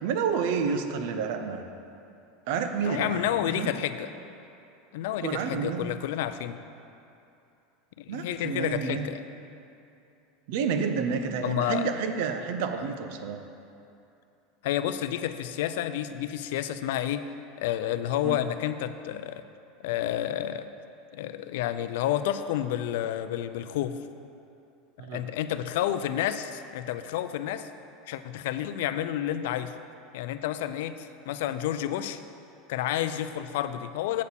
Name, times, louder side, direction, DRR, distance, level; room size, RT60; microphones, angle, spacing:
voice 1, 0.0-1.6 2.5-3.7 5.2-5.9 8.1-9.1 10.5-13.4 18.2-18.4 25.0-25.2, right 6 dB, 65° right, 7 dB, 0.6 m, -29 dB
voice 2, 2.8-4.1 4.9-6.6 8.0-9.2 11.4-11.9 14.6-17.2 17.6-19.4 19.8-20.7 21.1-24.0 25.0-27.7 28.1-29.7 30.1-32.2 32.7-34.2, left 11 dB, 75° left, 11 dB, 0.4 m, -30 dB
8.2 x 4.2 x 7.0 m, 2.7 s
supercardioid pair, 145°, 0 cm